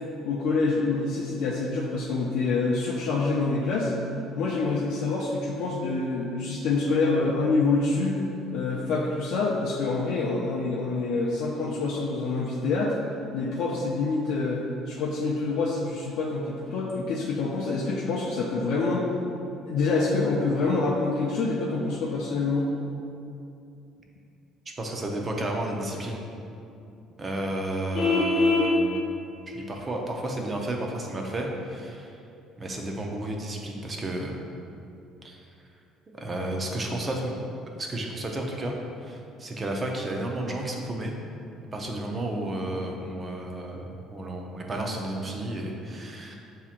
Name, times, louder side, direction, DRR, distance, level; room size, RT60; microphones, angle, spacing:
voice 1, 0.2-3.9 4.4-8.2 8.5-13.0 13.3-14.6 14.9-19.1 19.7-22.7, left 3 dB, 70° left, -4 dB, 0.4 m, -26 dB
voice 2, 24.8-26.2 27.2-29.0 29.5-32.1 32.6-34.3 35.2-35.4 36.1-37.4 37.8-38.7 39.0-41.1 41.7-46.3, right 1 dB, 25° right, 1 dB, 0.5 m, -32 dB
Vehicle horn car horn honking, 27.9-28.7, left 3 dB, 30° left, 0.9 m, -22 dB
7.0 x 2.8 x 2.5 m, 2.7 s
cardioid pair, 145°, 0 cm